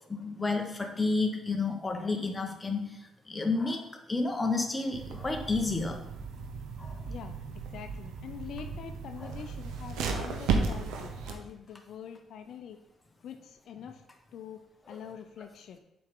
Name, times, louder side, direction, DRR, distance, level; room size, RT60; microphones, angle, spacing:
voice 1, 0.1-6.0 6.8-7.0 14.9-15.0, left 3 dB, 20° left, 3 dB, 1.1 m, -31 dB
sound 1, 4.9-11.3, right 4 dB, 90° right, 0.8 m, -35 dB
voice 2, 7.1-7.4 7.7-12.8 13.2-14.0 14.3-15.8, left 8 dB, 70° left, 7 dB, 0.5 m, -45 dB
7.6 x 4.7 x 3.8 m, 0.87 s
cardioid pair, 90°, 0 cm